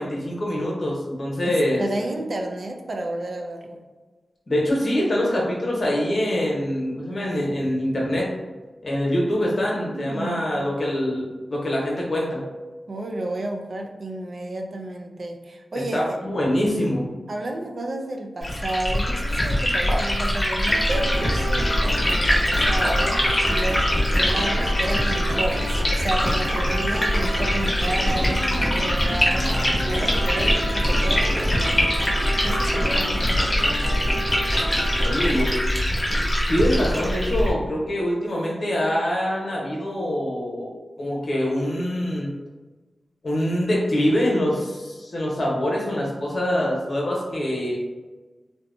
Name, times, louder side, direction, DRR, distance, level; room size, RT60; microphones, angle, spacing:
voice 1, 0.0-1.8 4.5-8.3 8.8-12.4 15.9-17.1 35.0-35.5 36.1-36.2 36.5-40.7 41.0-42.3 43.2-47.8, equal, 65° left, -4 dB, 0.8 m, -24 dB
voice 2, 1.4-3.8 9.7-10.5 12.9-16.2 17.3-34.0, right 1 dB, 65° right, 3 dB, 0.4 m, -32 dB
Liquid, 18.4-37.5, equal, 40° left, 0.8 m, -23 dB
sound 1, 20.7-35.4, right 1 dB, 85° right, 0.9 m, -30 dB
2.8 x 2.1 x 2.5 m, 1.2 s
cardioid pair, 45°, 0 cm